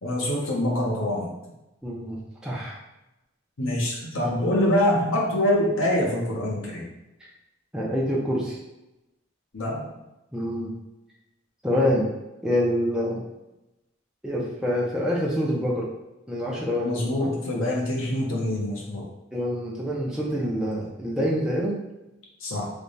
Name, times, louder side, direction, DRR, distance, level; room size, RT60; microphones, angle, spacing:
voice 1, 0.0-1.3 3.6-6.9 9.5-9.9 16.8-19.1 22.4-22.7, left 1 dB, 70° left, -3 dB, 0.9 m, -25 dB
voice 2, 1.8-2.8 4.5-4.7 7.2-7.3 7.7-8.6 10.3-10.7 11.6-12.1 12.4-13.2 14.2-15.9 16.3-17.3 19.3-21.8, equal, 5° right, -4 dB, 0.6 m, -26 dB
3.3 x 2.3 x 4.0 m, 0.96 s
head